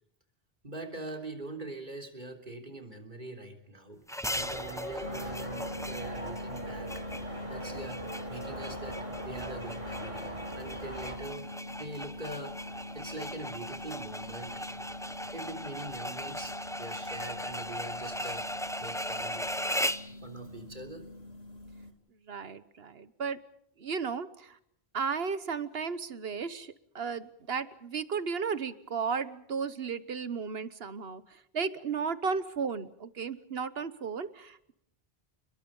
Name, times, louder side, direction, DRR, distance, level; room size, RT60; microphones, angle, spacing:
voice 1, 0.6-4.0 4.3-7.0 7.5-10.3 10.6-14.6 15.3-18.5 18.8-19.5 20.2-21.1, right 2 dB, 50° right, 3 dB, 3.7 m, -43 dB
sound 1, 4.1-20.1, equal, 5° left, 0.7 m, -38 dB
sound 2, 4.3-11.2, right 1 dB, 30° right, 4.2 m, -42 dB
sound 3, 5.0-21.9, left 1 dB, 75° left, 3.3 m, -43 dB
voice 2, 22.3-23.4 23.8-24.6 24.9-34.7, right 5 dB, 75° right, 14 dB, 1.3 m, -34 dB
29.5 x 21.5 x 5.5 m, 0.72 s
omnidirectional pair, 1.0 m